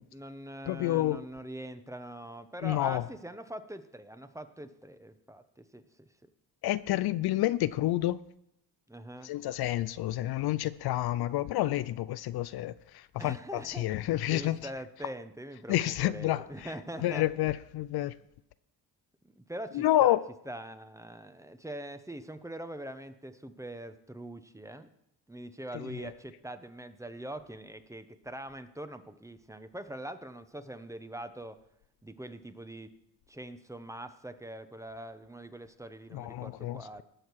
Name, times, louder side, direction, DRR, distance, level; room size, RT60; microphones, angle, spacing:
voice 1, 0.1-5.8 8.9-9.3 13.2-17.3 19.2-20.2 20.5-24.9 25.3-31.6 32.0-32.9 33.3-37.0, right 1 dB, 5° right, 0.9 m, -43 dB
voice 2, 0.7-1.2 2.6-3.1 6.6-8.2 9.2-14.6 15.7-16.7 17.0-18.1 19.7-20.3 25.9-26.1 36.1-37.0, left 14 dB, 65° left, 0.5 m, -29 dB
19.0 x 6.4 x 4.7 m
cardioid pair, 80°, 41 cm